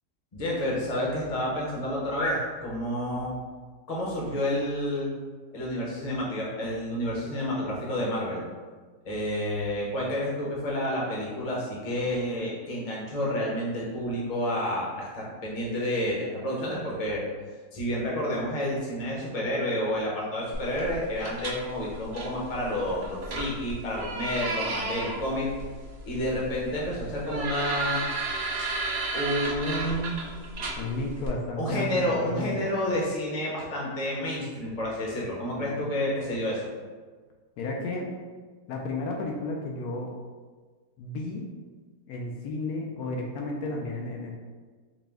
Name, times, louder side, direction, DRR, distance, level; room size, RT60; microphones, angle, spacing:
voice 1, 0.3-3.4 3.9-5.1 5.5-8.4 9.0-17.2 17.7-25.5 26.0-28.1 28.5-28.8 29.1-30.2 31.6-36.6, equal, 30° left, -4 dB, 0.7 m, -29 dB
sound 1, 20.5-31.3, right 2 dB, 70° right, 0.4 m, -34 dB
voice 2, 30.8-32.7 35.5-35.9 37.6-38.1 38.7-40.1 41.0-41.5 42.1-44.3, left 2 dB, 75° left, 0 dB, 1.0 m, -33 dB
4.8 x 2.1 x 3.4 m, 1.4 s
omnidirectional pair, 1.7 m